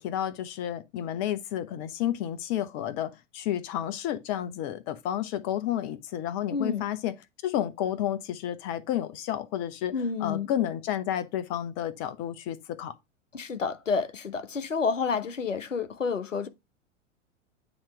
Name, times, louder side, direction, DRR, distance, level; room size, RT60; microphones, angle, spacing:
voice 1, 0.0-7.1 7.4-9.9 10.2-12.9, left 11 dB, 35° left, 0.8 m, -31 dB
voice 2, 6.5-6.8 9.9-10.5 13.3-16.5, left 5 dB, 85° left, 0.7 m, -29 dB
8.8 x 3.0 x 4.6 m
figure-of-eight pair, 95°, 37 cm